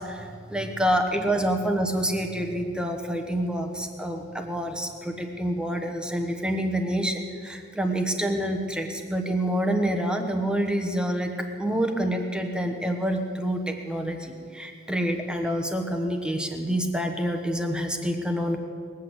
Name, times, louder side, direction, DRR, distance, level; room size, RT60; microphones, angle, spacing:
voice 1, 0.0-11.3 11.6-18.6, right 1 dB, 5° right, 4 dB, 1.1 m, -27 dB
20.5 x 8.4 x 7.9 m, 2.2 s
head